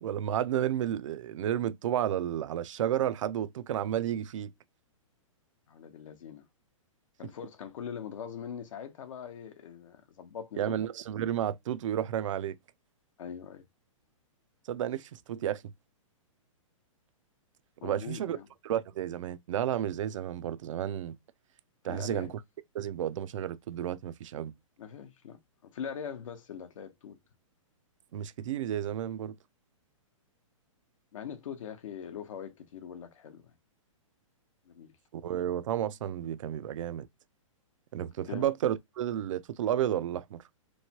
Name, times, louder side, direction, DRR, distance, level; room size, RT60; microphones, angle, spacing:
voice 1, 0.0-4.5 10.6-12.6 14.7-15.6 17.8-18.4 18.6-21.2 21.8-22.3 22.7-24.5 28.1-29.3 35.1-37.1 37.9-40.4, right 10 dB, 65° right, 0.4 m, -32 dB
voice 2, 5.7-6.5 7.2-10.8 13.2-13.6 17.8-18.5 21.9-22.3 24.8-27.2 31.1-33.5 34.7-35.0 38.3-38.5, left 8 dB, 70° left, 0.8 m, -42 dB
3.1 x 2.1 x 2.8 m
hypercardioid pair, 145°, 17 cm